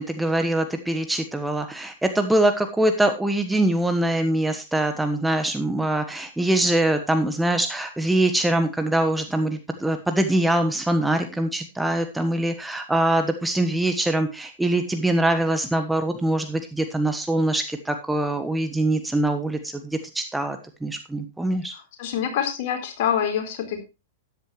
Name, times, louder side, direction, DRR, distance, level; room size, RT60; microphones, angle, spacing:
voice 1, 0.0-21.7, right 1 dB, 5° right, 7 dB, 1.2 m, -23 dB
voice 2, 21.7-23.8, left 8 dB, 50° left, 4 dB, 3.9 m, -26 dB
13.5 x 10.5 x 3.1 m, 0.27 s
figure-of-eight pair, 105°, 0 cm